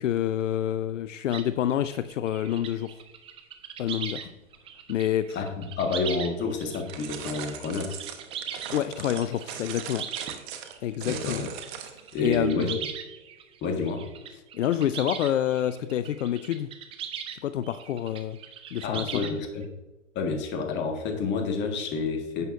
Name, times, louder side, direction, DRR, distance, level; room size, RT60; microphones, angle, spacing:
voice 1, 0.0-3.0 3.8-4.3 4.9-5.4 8.7-10.1 10.8-11.5 12.2-12.8 14.5-16.7 17.3-18.4 18.7-19.2, left 11 dB, 75° left, 13 dB, 0.5 m, -27 dB
sound 1, 1.3-4.3 4.5-17.4 17.6-19.7, right 8 dB, 15° right, 0.5 m, -40 dB
voice 2, 5.3-7.9 11.0-11.5 12.1-12.7 13.6-14.0 18.8-19.7 20.1-22.5, left 4 dB, 30° left, 4 dB, 1.6 m, -29 dB
sound 2, 6.9-12.2, right 9 dB, 40° right, 1.2 m, -39 dB
11.0 x 8.1 x 2.6 m, 1.1 s
hypercardioid pair, 115°, 38 cm